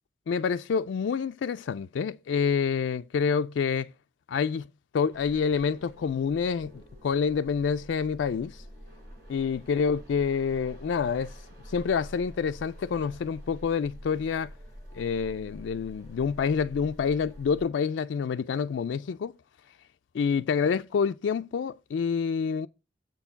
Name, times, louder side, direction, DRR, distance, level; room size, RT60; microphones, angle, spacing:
voice 1, 0.3-3.9 4.3-4.7 4.9-8.6 9.3-11.3 11.7-14.5 14.9-19.3 20.1-22.7, left 6 dB, 90° left, 0.4 m, -27 dB
sound 1, 5.1-17.6, equal, 55° right, 5.3 m, -47 dB
7.6 x 4.6 x 5.6 m
head